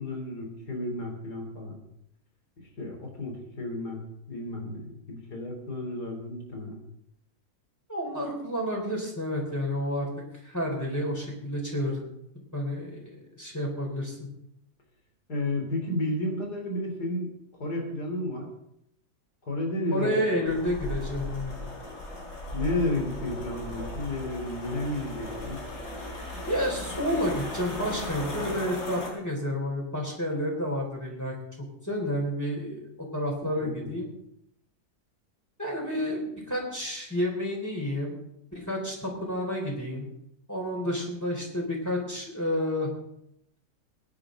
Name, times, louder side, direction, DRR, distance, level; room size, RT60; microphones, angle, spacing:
voice 1, 0.0-1.8 2.6-4.0 4.3-6.8 15.3-17.3 17.6-18.5 19.5-20.5 22.5-25.6 33.6-33.9, left 1 dB, 85° left, 1 dB, 4.0 m, -32 dB
voice 2, 7.9-10.1 10.4-12.0 12.5-13.1 13.4-14.3 19.9-21.5 26.4-31.4 31.8-34.1 35.6-38.2 38.5-40.1 40.5-42.9, left 1 dB, 10° left, -2 dB, 3.7 m, -30 dB
sound 1, 20.5-29.1, left 1 dB, 60° left, 4.0 m, -36 dB
21.5 x 10.0 x 3.8 m, 0.77 s
omnidirectional pair, 1.7 m